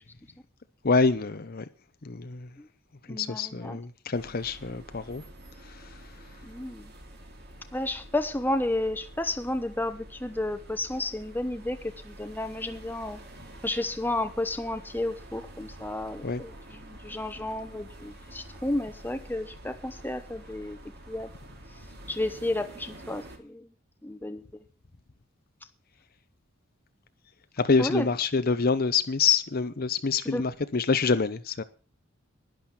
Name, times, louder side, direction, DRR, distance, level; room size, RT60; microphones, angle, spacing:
voice 1, 0.8-1.7 2.0-2.5 3.1-5.2 5.6-5.9 16.2-16.4 27.6-31.6, left 4 dB, 50° left, 0.8 m, -26 dB
voice 2, 3.1-3.8 6.4-6.9 7.7-13.2 13.6-20.8 21.1-21.3 22.1-23.7 24.0-24.4 27.8-28.1 30.2-30.4, left 1 dB, 10° left, 0.9 m, -32 dB
sound 1, 4.1-23.4, right 1 dB, 55° right, 2.8 m, -48 dB
11.5 x 10.5 x 6.0 m
head